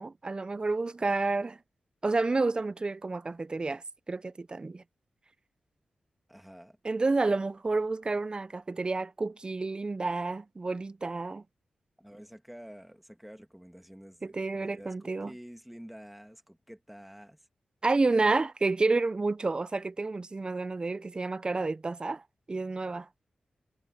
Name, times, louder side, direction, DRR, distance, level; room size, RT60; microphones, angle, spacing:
voice 1, 0.0-1.6 2.0-4.8 6.8-11.4 14.2-15.3 17.8-22.2 22.5-23.1, right 3 dB, 35° right, 0.6 m, -30 dB
voice 2, 6.3-6.8 12.0-17.5, equal, 5° right, 2.3 m, -49 dB
cardioid pair, 60°, 3 cm